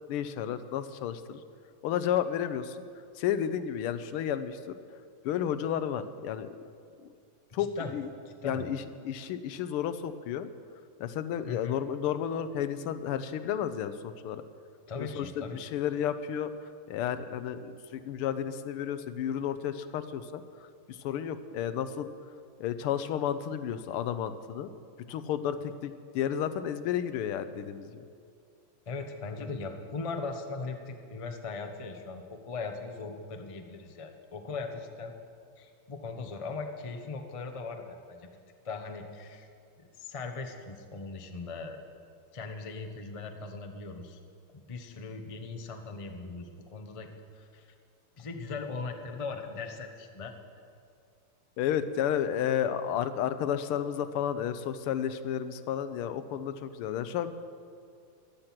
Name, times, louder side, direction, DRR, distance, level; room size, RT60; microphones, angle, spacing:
voice 1, 0.1-1.4 1.8-2.9 3.1-4.8 5.2-6.5 7.0-7.1 7.5-8.1 8.4-10.5 11.0-14.4 15.0-22.1 22.6-24.7 25.1-28.0 51.6-57.3, left 9 dB, 85° left, 12 dB, 1.6 m, -32 dB
voice 2, 7.6-7.9 8.4-8.7 11.5-11.8 14.9-15.7 28.9-35.1 35.6-38.3 38.6-39.5 40.0-41.8 42.3-44.2 44.5-47.1 47.3-47.7 48.2-50.3, left 4 dB, 45° left, 5 dB, 0.4 m, -39 dB
15.5 x 11.5 x 5.9 m, 2.4 s
omnidirectional pair, 2.4 m